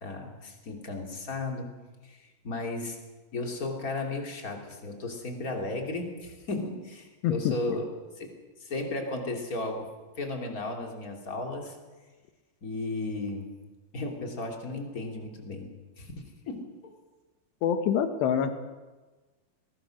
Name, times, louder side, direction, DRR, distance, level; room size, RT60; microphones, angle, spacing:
voice 1, 0.0-1.7 2.0-2.2 2.4-3.0 3.3-7.9 8.2-8.3 8.6-9.9 10.2-11.8 12.6-13.5 13.9-15.7 16.0-16.6, left 2 dB, 25° left, 2 dB, 2.5 m, -34 dB
voice 2, 7.2-7.6 17.6-18.5, left 8 dB, 85° left, 8 dB, 3.6 m, -25 dB
20.5 x 20.5 x 6.4 m, 1.3 s
omnidirectional pair, 4.7 m